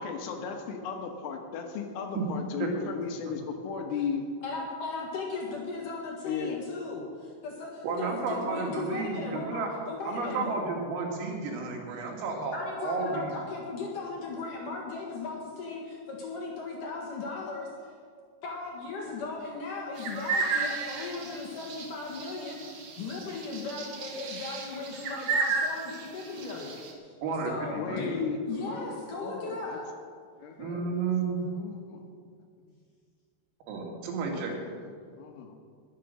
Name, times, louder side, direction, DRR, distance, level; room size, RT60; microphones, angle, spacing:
voice 1, 0.0-4.2 6.2-6.6 27.7-29.0 29.2-29.8 30.4-30.9 31.4-32.1 34.6-34.8 35.2-35.6, left 5 dB, 80° left, 4 dB, 3.9 m, -35 dB
voice 2, 4.4-10.5 12.5-17.7 18.4-27.2 27.5-28.1 28.5-30.0, left 3 dB, 55° left, -2 dB, 2.5 m, -37 dB
voice 3, 7.8-9.7 10.0-13.3 27.2-28.1 30.6-31.5 33.7-34.7, right 4 dB, 90° right, 0 dB, 4.9 m, -32 dB
sound 1, 20.0-26.9, right 4 dB, 60° right, 2.2 m, -33 dB
20.5 x 7.7 x 6.7 m, 2.1 s
omnidirectional pair, 5.8 m